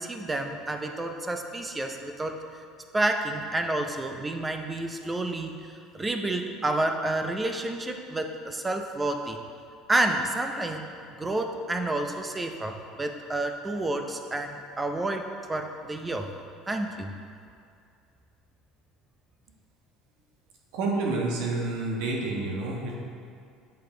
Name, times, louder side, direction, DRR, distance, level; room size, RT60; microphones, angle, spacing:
voice 1, 0.0-2.4 2.9-5.5 5.9-9.4 9.9-16.3 16.7-17.1, right 2 dB, 15° right, 5 dB, 0.5 m, -29 dB
voice 2, 20.7-22.9, right 3 dB, 75° right, -1 dB, 1.3 m, -29 dB
7.8 x 5.1 x 3.8 m, 2.4 s
cardioid pair, 130°, 0 cm